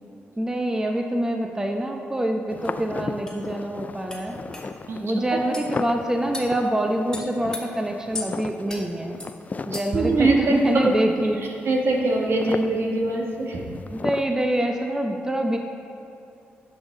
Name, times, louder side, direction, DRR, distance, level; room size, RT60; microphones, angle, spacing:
voice 1, 0.4-4.4 5.0-9.2 9.7-11.4 13.9-15.6, right 1 dB, 15° right, 3 dB, 0.7 m, -25 dB
sound 1, 2.5-14.2, left 4 dB, 35° left, 0.4 m, -36 dB
sound 2, 2.6-2.7 3.3-3.4 4.1-4.2 4.5-4.7 5.5-5.7 6.3-6.5 7.1-7.6 8.1-8.3 8.7-8.8 9.2-9.3 9.7-10.0, left 3 dB, 15° left, 1.6 m, -35 dB
voice 2, 9.9-10.6 11.6-13.6, right 2 dB, 65° right, -1 dB, 1.4 m, -22 dB
11.0 x 5.5 x 3.7 m, 2.7 s
supercardioid pair, 55°, 4 cm